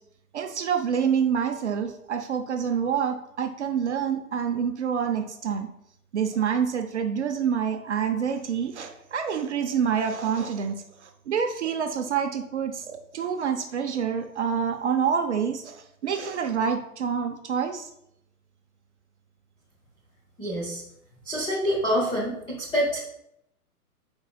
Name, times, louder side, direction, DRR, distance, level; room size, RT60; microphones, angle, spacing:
voice 1, 0.3-5.7 6.1-17.9, right 7 dB, 50° right, 6 dB, 0.7 m, -27 dB
voice 2, 20.4-20.8 21.2-23.0, equal, 10° left, -5 dB, 0.9 m, -26 dB
11.0 x 4.8 x 2.3 m, 0.77 s
figure-of-eight pair, 120°, 45 cm